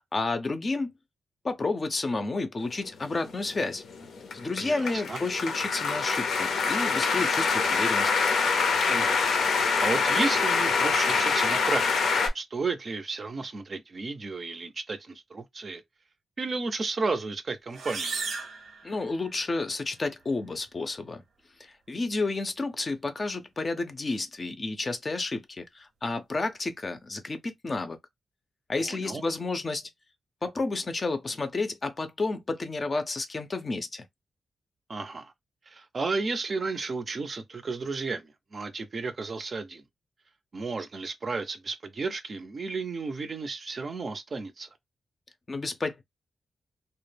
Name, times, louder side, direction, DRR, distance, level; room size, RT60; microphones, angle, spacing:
voice 1, 0.1-0.9 1.4-3.8 4.3-8.1 18.8-21.2 21.6-28.0 28.7-29.8 30.4-34.1 45.5-46.0, left 3 dB, 35° left, 0.4 m, -31 dB
sound 1, 3.0-12.3, left 5 dB, 85° left, 0.5 m, -25 dB
voice 2, 4.6-5.2 8.9-9.2 9.5-11.9 12.3-15.8 16.4-18.1 28.8-29.2 34.9-35.3 35.7-39.8 40.5-44.7, right 4 dB, 45° right, 0.4 m, -33 dB
sound 2, 17.7-19.6, right 4 dB, 85° right, 0.7 m, -36 dB
2.2 x 2.0 x 3.2 m
cardioid pair, 90°, 0 cm